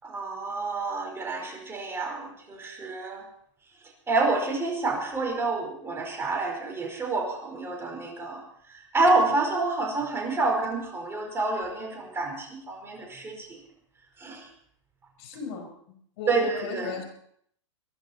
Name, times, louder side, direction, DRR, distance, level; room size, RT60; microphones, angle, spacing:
voice 1, 0.0-3.2 4.1-8.4 8.9-13.5 14.2-14.4 16.3-16.9, right 3 dB, 15° right, 1 dB, 4.9 m, -28 dB
voice 2, 15.2-17.0, left 1 dB, 55° left, 5 dB, 5.5 m, -36 dB
23.0 x 11.0 x 4.5 m, 0.67 s
hypercardioid pair, 125°, 16 cm